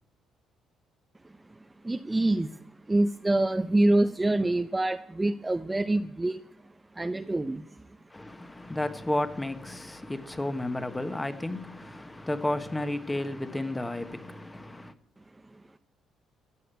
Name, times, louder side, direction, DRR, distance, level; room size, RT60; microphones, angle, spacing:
voice 1, 1.8-6.4 7.0-7.7, right 2 dB, 15° right, 0.7 m, -26 dB
voice 2, 8.1-14.9, left 1 dB, 15° left, 1.3 m, -32 dB
15.5 x 6.5 x 8.9 m
cardioid pair, 85°, 0 cm